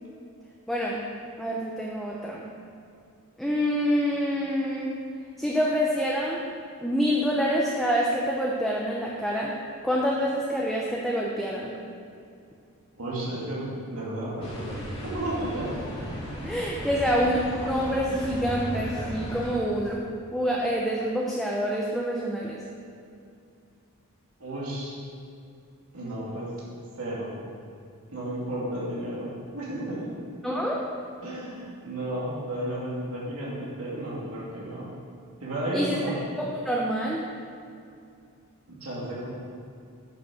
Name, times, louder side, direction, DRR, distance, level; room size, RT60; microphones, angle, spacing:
voice 1, 0.7-1.0 1.4-2.4 3.4-4.9 5.4-6.4 6.8-9.5 9.8-11.7 16.4-20.0 20.3-22.6 30.4-30.8 35.7-36.0 36.5-37.2, equal, ahead, -4 dB, 0.7 m, -26 dB
voice 2, 13.0-14.8 15.1-15.8 24.4-25.0 25.9-26.5 27.0-27.3 28.1-30.1 31.2-34.9 35.4-36.1 38.7-39.3, right 1 dB, 70° right, -6 dB, 2.4 m, -33 dB
sound 1, 14.4-19.5, equal, 30° left, 2.0 m, -35 dB
8.9 x 5.9 x 6.3 m, 2.4 s
head